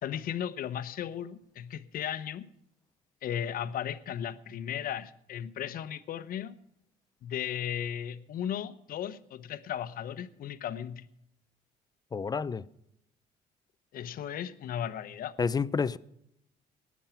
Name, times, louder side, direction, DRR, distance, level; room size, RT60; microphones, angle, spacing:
voice 1, 0.0-2.5 3.2-6.5 7.2-11.1 13.9-15.3, left 9 dB, 60° left, 0.9 m, -36 dB
voice 2, 12.1-12.6 15.4-16.0, left 5 dB, 25° left, 0.4 m, -29 dB
19.0 x 7.4 x 5.8 m
cardioid pair, 110°, 17 cm